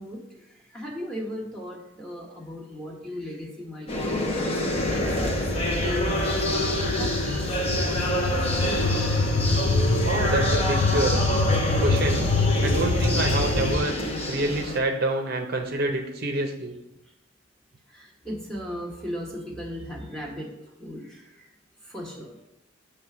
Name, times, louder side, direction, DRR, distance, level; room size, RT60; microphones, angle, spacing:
voice 1, 0.0-4.2 4.7-9.0 17.9-21.4 21.8-22.4, equal, 5° left, -1 dB, 1.3 m, -37 dB
sound 1, 3.9-14.8, equal, 30° left, 0.9 m, -27 dB
sound 2, 4.7-13.8, left 3 dB, 60° left, 0.7 m, -25 dB
voice 2, 10.0-11.3 11.8-12.3 12.6-14.0 14.3-16.7, right 2 dB, 50° right, 3 dB, 0.6 m, -27 dB
7.2 x 3.3 x 6.0 m, 0.89 s
head